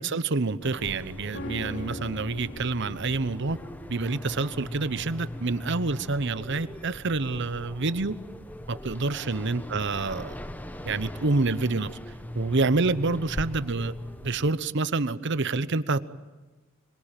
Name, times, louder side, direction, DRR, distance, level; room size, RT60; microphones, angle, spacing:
voice 1, 0.0-3.6 3.9-8.2 8.7-10.4 10.8-11.9 12.3-13.9 14.2-16.0, right 3 dB, 60° right, 14 dB, 1.0 m, -27 dB
sound 1, 0.6-14.5, left 1 dB, 10° left, 1.0 m, -40 dB
sound 2, 1.3-10.7 11.0-11.1, left 1 dB, 60° left, 3.2 m, -43 dB
26.0 x 22.5 x 9.1 m, 1.2 s
head